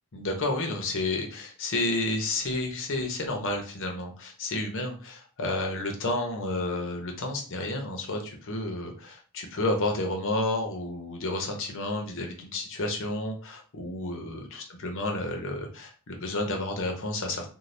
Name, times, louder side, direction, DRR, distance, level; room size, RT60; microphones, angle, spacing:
voice 1, 0.1-17.5, left 2 dB, 60° left, 3 dB, 0.7 m, -31 dB
2.6 x 2.2 x 3.2 m, 0.40 s
head